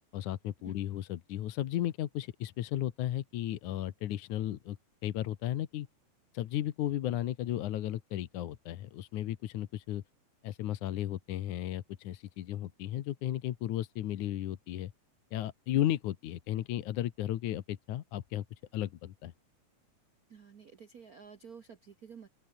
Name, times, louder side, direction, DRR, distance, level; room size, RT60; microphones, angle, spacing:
voice 1, 0.1-4.8 5.0-5.9 6.3-10.0 10.4-14.9 15.3-18.4 18.7-19.3, left 13 dB, 75° left, 2.6 m, -34 dB
voice 2, 20.3-22.3, right 6 dB, 80° right, 0.8 m, -51 dB
open air
omnidirectional pair, 3.5 m